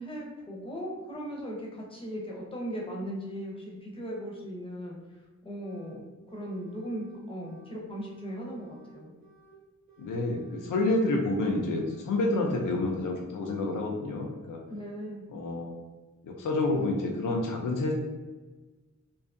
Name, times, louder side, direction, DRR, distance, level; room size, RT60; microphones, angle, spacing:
voice 1, 0.0-5.0 5.4-6.1 6.3-9.1 14.7-15.2, equal, 15° left, -3 dB, 0.6 m, -38 dB
sound 1, 5.6-6.0 6.3-7.8 8.1-9.6 9.9-11.4 11.7-12.6, right 3 dB, 25° right, 0.9 m, -57 dB
voice 2, 10.0-14.6 15.3-15.7 16.2-17.9, left 2 dB, 85° left, 0 dB, 0.5 m, -29 dB
2.6 x 2.3 x 2.5 m, 1.2 s
wide cardioid pair, 110°, 31 cm